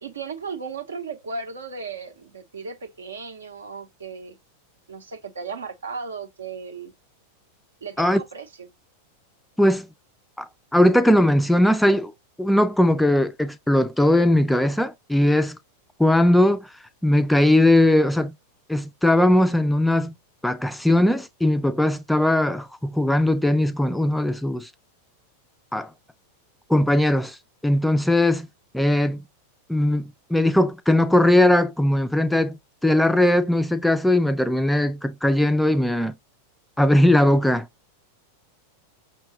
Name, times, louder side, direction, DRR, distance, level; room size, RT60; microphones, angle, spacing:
voice 1, 0.0-4.4 4.9-6.9 7.8-8.7, right 5 dB, 70° right, 0.7 m, -35 dB
voice 2, 10.4-12.1 12.4-15.6 16.0-16.7 17.0-18.3 18.7-20.1 20.4-24.7 25.7-25.9 26.7-27.4 27.6-28.5 28.7-29.2 29.7-36.1 36.8-37.7, left 1 dB, 5° left, 0.3 m, -19 dB
5.7 x 2.3 x 2.8 m
figure-of-eight pair, 90°, 0 cm